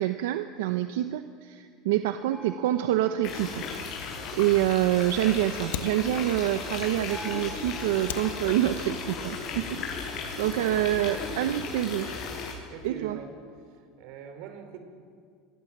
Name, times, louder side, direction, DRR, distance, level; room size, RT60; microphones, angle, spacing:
voice 1, 0.0-3.6 4.4-12.2 12.8-13.2, right 13 dB, 85° right, 9 dB, 1.0 m, -27 dB
sound 1, 2.3-5.1 7.1-10.3 13.1-13.2, equal, 5° left, 6.5 m, -48 dB
sound 2, 3.2-12.5, left 5 dB, 45° left, 6.7 m, -36 dB
Fire, 4.8-10.2, left 11 dB, 85° left, 1.3 m, -43 dB
voice 2, 12.7-13.3 14.0-14.8, right 8 dB, 60° right, 7 dB, 4.3 m, -41 dB
27.0 x 23.0 x 7.5 m, 2.2 s
supercardioid pair, 150°, 0 cm